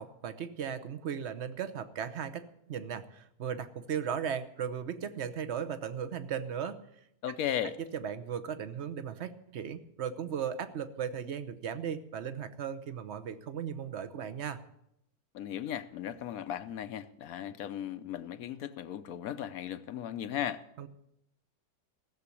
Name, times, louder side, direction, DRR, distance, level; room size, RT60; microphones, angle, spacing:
voice 1, 0.0-6.8 7.9-14.6 20.8-20.9, right 8 dB, 50° right, 1.0 m, -37 dB
voice 2, 7.2-7.8 15.3-20.6, left 10 dB, 70° left, 1.1 m, -36 dB
16.0 x 7.3 x 8.3 m
omnidirectional pair, 1.7 m